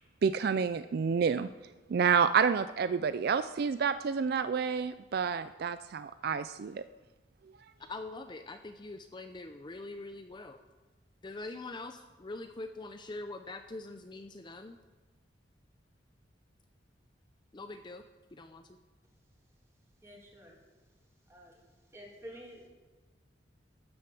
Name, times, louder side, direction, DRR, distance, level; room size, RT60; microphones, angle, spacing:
voice 1, 0.2-1.5 1.9-6.8, right 6 dB, 55° right, 12 dB, 0.3 m, -29 dB
voice 2, 7.9-10.6 11.2-14.8 17.5-18.0 18.3-18.6, left 2 dB, 25° left, 7 dB, 0.5 m, -43 dB
voice 3, 20.0-20.6 21.3-21.6 21.9-22.7, equal, 15° right, -1 dB, 2.8 m, -49 dB
12.5 x 7.8 x 7.0 m, 1.3 s
head